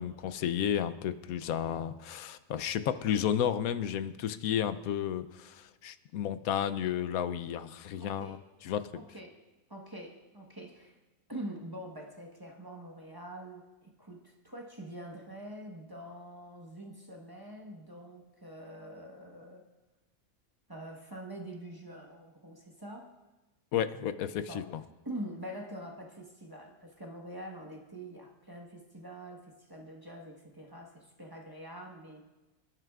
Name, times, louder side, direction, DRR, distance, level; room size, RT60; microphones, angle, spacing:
voice 1, 0.0-8.4 8.6-8.9 23.7-24.6, left 9 dB, 85° left, 12 dB, 1.1 m, -32 dB
voice 2, 8.0-8.4 8.9-9.4 9.7-11.0 11.3-19.7 20.7-23.1 24.5-24.7 25.0-32.2, right 1 dB, 15° right, 0 dB, 1.2 m, -45 dB
26.0 x 11.0 x 2.4 m, 1.1 s
omnidirectional pair, 1.5 m